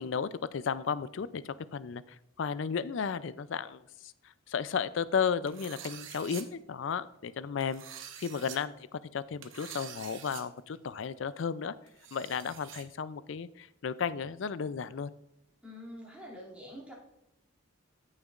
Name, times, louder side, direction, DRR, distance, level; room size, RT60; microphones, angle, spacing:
voice 1, 0.0-4.1 4.5-7.8 8.2-11.7 12.1-15.1, left 6 dB, 65° left, 16 dB, 0.4 m, -34 dB
sound 1, 5.5-6.4 7.6-8.6 9.4-10.4 10.7-10.8 11.9-12.8, right 9 dB, 65° right, 0.9 m, -46 dB
voice 2, 15.6-16.9, equal, 5° right, -6 dB, 2.5 m, -46 dB
14.0 x 6.5 x 2.5 m, 0.82 s
head